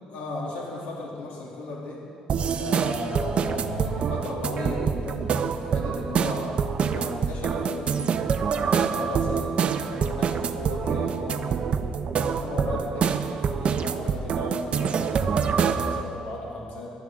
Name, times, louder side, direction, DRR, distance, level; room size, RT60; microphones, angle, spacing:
voice 1, 0.1-2.0 2.6-6.5 6.8-11.8 12.2-16.9, left 2 dB, 85° left, -4 dB, 2.8 m, -35 dB
sound 1, 2.3-16.0, right 6 dB, 50° right, 0.7 m, -26 dB
22.5 x 10.5 x 3.7 m, 2.5 s
cardioid pair, 100°, 2 cm